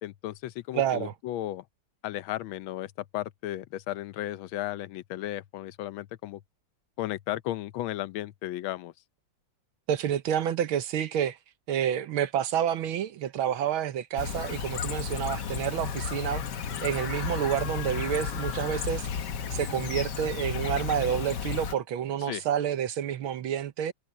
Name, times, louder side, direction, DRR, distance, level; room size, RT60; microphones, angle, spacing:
voice 1, 0.0-1.7 2.0-6.4 7.0-8.9 22.2-22.5, left 14 dB, 75° left, 1.4 m, -35 dB
voice 2, 0.7-1.1 9.9-11.4 11.7-16.4 16.8-23.9, right 9 dB, 75° right, 1.8 m, -29 dB
Chirp tweet, 14.2-21.8, left 7 dB, 60° left, 1.6 m, -33 dB
omnidirectional pair, 2.3 m